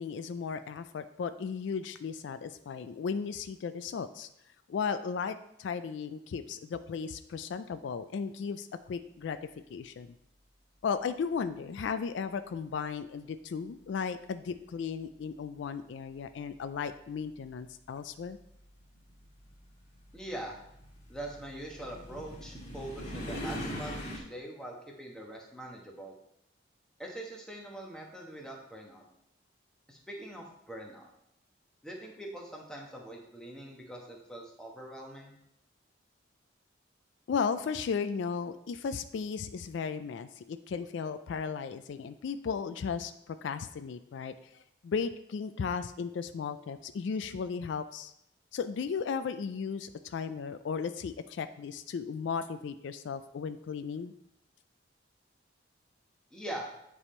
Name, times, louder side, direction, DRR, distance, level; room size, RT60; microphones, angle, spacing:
voice 1, 0.0-4.3 4.7-9.4 9.7-10.1 10.8-18.4 37.3-48.1 48.5-54.1, left 6 dB, 70° left, 11 dB, 0.3 m, -35 dB
sound 1, 17.0-17.1 18.1-24.2, equal, 35° left, 1.5 m, -41 dB
voice 2, 20.1-20.6 21.1-26.1 27.0-29.0 29.9-31.1 31.8-35.4 56.3-56.7, right 1 dB, 5° left, -1 dB, 1.0 m, -43 dB
9.6 x 3.5 x 4.3 m, 0.79 s
head